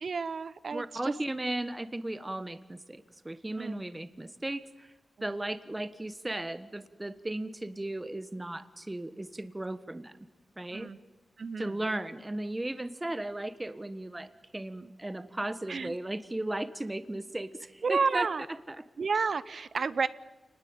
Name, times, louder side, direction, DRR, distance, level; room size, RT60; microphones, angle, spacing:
voice 1, 0.0-1.1 3.6-3.8 10.7-11.0 11.4-11.8 14.8-14.9 15.7-16.0 17.8-18.4 19.0-20.1, right 5 dB, 55° right, 16 dB, 0.8 m, -31 dB
voice 2, 0.7-4.9 5.2-10.1 10.6-10.9 11.6-18.3 18.7-18.8, right 1 dB, 15° right, 13 dB, 1.3 m, -36 dB
28.5 x 20.0 x 9.0 m, 1.1 s
wide cardioid pair, 115°, 0 cm